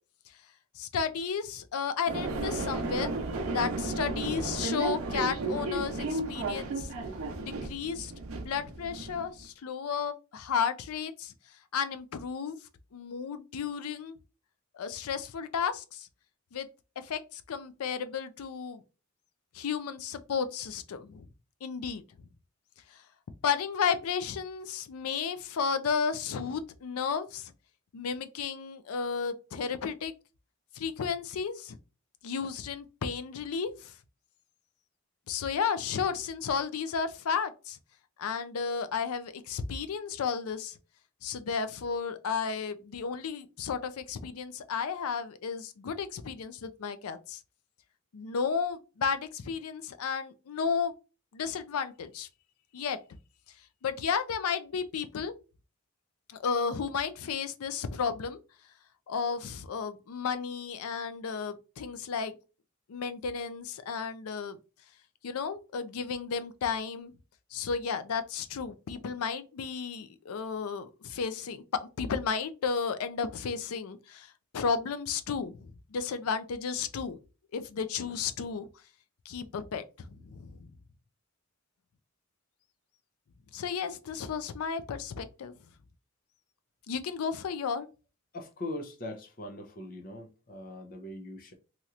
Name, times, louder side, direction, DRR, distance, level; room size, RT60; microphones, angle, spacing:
voice 1, 0.8-3.1 3.5-6.9 7.4-8.1 8.4-11.3 11.7-12.6 12.9-14.2 14.7-16.1 16.5-16.7 17.0-18.8 19.5-21.3 21.6-22.0 22.9-23.0 23.4-27.5 27.9-30.1 30.7-31.8 32.2-33.9 35.3-37.8 38.2-40.8 41.2-47.4 48.1-50.9 51.3-52.3 52.7-53.0 53.8-55.3 56.3-58.4 59.1-62.4 62.9-64.6 65.2-67.1 67.5-77.2 77.5-78.7 79.3-80.5 83.5-85.5 86.9-87.9, left 6 dB, 85° left, 0.4 m, -33 dB
sound 1, 2.1-9.4, right 2 dB, 75° right, 0.6 m, -34 dB
voice 2, 88.3-91.5, left 1 dB, 40° left, 0.6 m, -41 dB
3.0 x 2.8 x 2.4 m
head